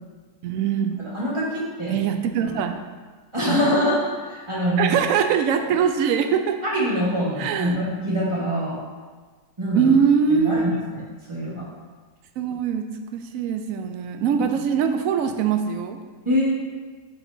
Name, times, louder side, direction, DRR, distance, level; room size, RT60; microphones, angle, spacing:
voice 1, 0.4-1.0 1.9-2.8 3.5-3.6 4.8-6.6 7.4-7.8 9.7-10.7 12.4-16.0, right 7 dB, 70° right, 6 dB, 0.8 m, -22 dB
voice 2, 1.0-2.0 2.4-2.5 3.3-4.9 6.6-8.8 9.6-9.9 10.3-11.0 11.3-11.7 16.2-16.5, equal, 20° right, -6 dB, 1.4 m, -24 dB
9.0 x 4.4 x 2.7 m, 1.4 s
omnidirectional pair, 1.7 m